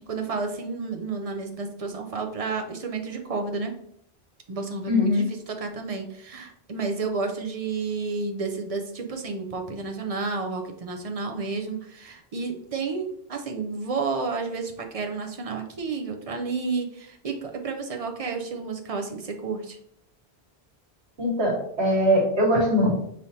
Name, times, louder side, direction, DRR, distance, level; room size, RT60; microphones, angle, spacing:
voice 1, 0.1-3.7 4.5-19.8, right 4 dB, 45° right, 4 dB, 0.5 m, -31 dB
voice 2, 4.9-5.2 21.2-22.9, equal, 85° right, -3 dB, 1.7 m, -21 dB
5.4 x 3.2 x 2.7 m, 0.72 s
omnidirectional pair, 1.1 m